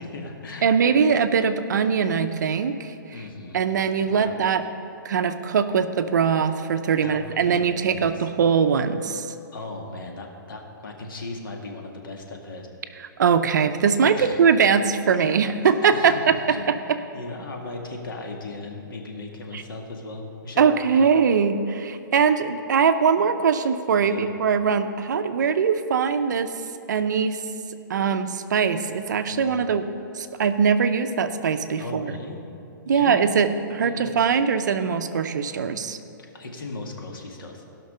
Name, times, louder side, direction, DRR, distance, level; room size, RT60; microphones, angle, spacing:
voice 1, 0.0-0.9 3.1-3.6 4.0-4.3 7.0-8.3 9.5-12.6 14.1-14.6 15.9-20.7 21.0-21.1 22.2-22.3 24.0-24.3 29.3-29.7 31.8-32.4 32.9-33.2 33.8-34.1 36.3-37.6, left 2 dB, 75° left, 1 dB, 1.9 m, -37 dB
voice 2, 0.6-2.9 3.5-4.6 5.0-9.3 13.2-16.1 19.5-19.6 20.6-26.5 26.9-27.4 27.9-29.8 30.1-32.2 32.9-36.0, right 6 dB, 55° right, 9 dB, 0.6 m, -21 dB
16.5 x 5.9 x 5.5 m, 2.8 s
hypercardioid pair, 175°, 11 cm